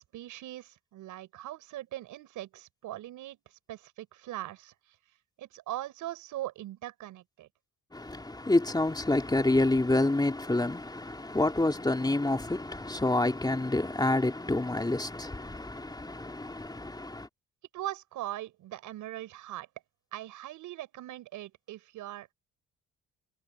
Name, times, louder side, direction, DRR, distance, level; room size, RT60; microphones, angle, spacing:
voice 1, 0.0-3.4 3.7-4.7 5.4-7.5 17.7-19.7 20.1-22.3, right 14 dB, 90° right, 7.0 m, -40 dB
voice 2, 7.9-17.3, left 2 dB, 15° left, 3.7 m, -28 dB
cardioid pair, 90°, 30 cm